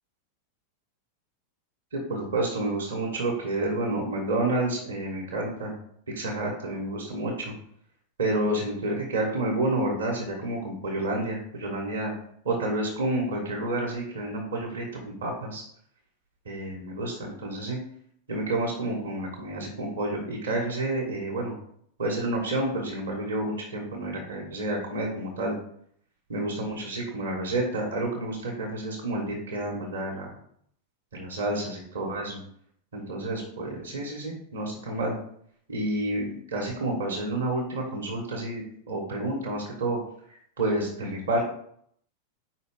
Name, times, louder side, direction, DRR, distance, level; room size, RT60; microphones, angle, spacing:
voice 1, 1.9-5.7 6.1-7.5 8.2-12.1 12.4-15.6 16.4-17.8 18.3-21.5 22.0-25.6 26.3-30.3 31.1-32.4 32.9-35.2 35.7-40.0 40.3-41.4, right 2 dB, 65° right, -2 dB, 1.5 m, -29 dB
5.1 x 3.9 x 4.8 m, 0.66 s
figure-of-eight pair, 90°, 0 cm